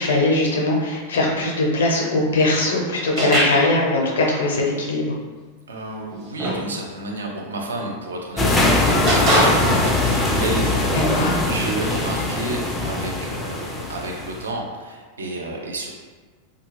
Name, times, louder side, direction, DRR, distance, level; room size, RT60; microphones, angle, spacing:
voice 1, 0.0-5.1 11.1-11.3, left 2 dB, 65° left, -1 dB, 0.5 m, -20 dB
sound 1, 3.2-3.8 6.1-6.7 7.8-8.0 9.1-9.9, right 1 dB, 35° right, 0.7 m, -21 dB
voice 2, 5.7-15.9, right 2 dB, 70° right, 0 dB, 0.4 m, -31 dB
sound 2, 8.4-14.5, left 2 dB, 15° left, 0.3 m, -22 dB
2.3 x 2.2 x 3.2 m, 1.4 s
figure-of-eight pair, 90°, 0 cm